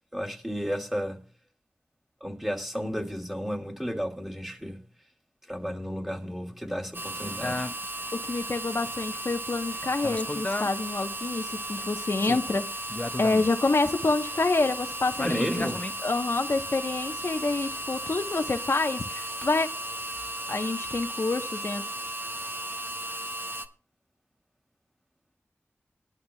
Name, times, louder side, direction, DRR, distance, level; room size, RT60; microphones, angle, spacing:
voice 1, 0.1-1.2 2.2-4.8 5.5-7.7 15.2-15.8, equal, 5° right, 2.7 m, -32 dB
sound 1, 6.9-23.7, right 1 dB, 45° right, 1.4 m, -35 dB
sound 2, 7.4-10.7 11.1-11.2 11.4-16.0 16.6-18.3 18.5-18.7 19.4-19.5 20.2-20.3 20.8-21.1, left 2 dB, 30° left, 0.4 m, -35 dB
voice 2, 8.1-12.7 13.2-15.7 16.0-19.7 20.5-21.9, left 3 dB, 60° left, 1.0 m, -27 dB
20.5 x 11.5 x 2.3 m
wide cardioid pair, 50°, 5 cm